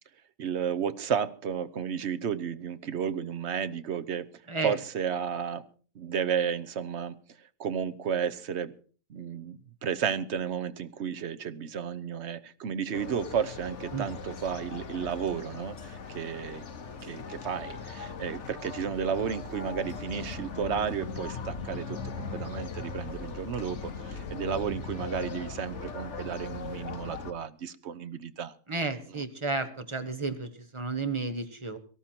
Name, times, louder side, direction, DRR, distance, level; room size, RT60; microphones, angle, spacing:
voice 1, 0.4-4.3 4.6-5.6 5.9-7.2 7.6-8.7 9.1-16.6 17.0-28.5, right 7 dB, 60° right, 14 dB, 1.1 m, -32 dB
sound 1, 12.9-27.3, left 5 dB, 65° left, 1.5 m, -39 dB
voice 2, 28.7-31.8, right 3 dB, 25° right, 8 dB, 1.4 m, -32 dB
18.0 x 13.0 x 4.4 m, 0.40 s
omnidirectional pair, 1.3 m